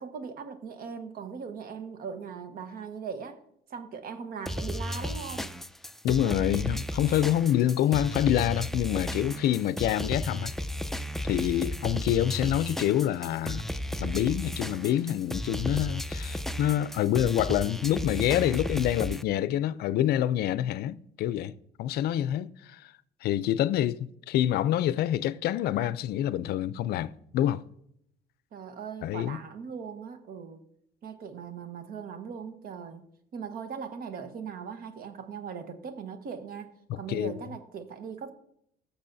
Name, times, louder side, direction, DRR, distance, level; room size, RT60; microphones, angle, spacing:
voice 1, 0.0-3.4 3.7-5.5 28.5-30.6 31.0-33.0 33.3-38.3, right 6 dB, 60° right, 1.3 m, -39 dB
sound 1, 4.4-19.2, equal, ahead, 0.4 m, -34 dB
voice 2, 6.0-10.5 11.2-13.7 14.0-21.5 21.8-22.9 23.2-27.6 29.0-29.4 36.9-37.3, left 12 dB, 70° left, 0.4 m, -27 dB
15.5 x 6.8 x 2.7 m
cardioid pair, 110°, 17 cm